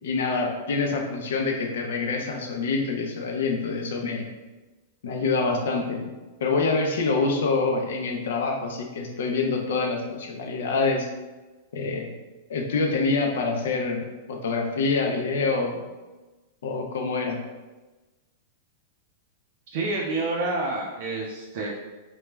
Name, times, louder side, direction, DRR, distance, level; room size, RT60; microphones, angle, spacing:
voice 1, 0.0-4.3 5.0-6.1 6.4-11.1 11.7-12.1 12.5-15.8 16.6-17.4, left 4 dB, 80° left, 3 dB, 0.5 m, -26 dB
voice 2, 19.7-21.7, right 2 dB, 55° right, -3 dB, 0.4 m, -28 dB
3.1 x 2.1 x 2.2 m, 1.2 s
supercardioid pair, 160°, 0 cm